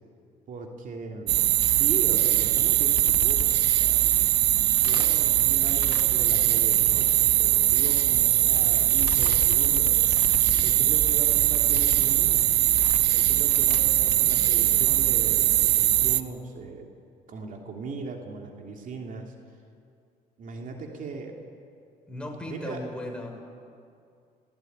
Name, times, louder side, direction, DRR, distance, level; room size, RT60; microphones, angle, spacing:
voice 1, 0.5-4.0 4.7-10.0 10.6-12.6 12.9-16.9 17.3-19.3 20.4-21.4 22.5-22.8, right 4 dB, 50° right, 2 dB, 3.1 m, -39 dB
sound 1, 1.3-16.2, right 14 dB, 80° right, 1.1 m, -21 dB
sound 2, 2.0-13.3, left 8 dB, 65° left, 1.6 m, -42 dB
sound 3, 4.1-6.4 6.7-14.3, left 10 dB, 85° left, 2.3 m, -44 dB
voice 2, 22.1-23.3, left 1 dB, 5° left, 0 dB, 6.0 m, -36 dB
29.5 x 18.5 x 9.6 m, 2.4 s
cardioid pair, 110°, 17 cm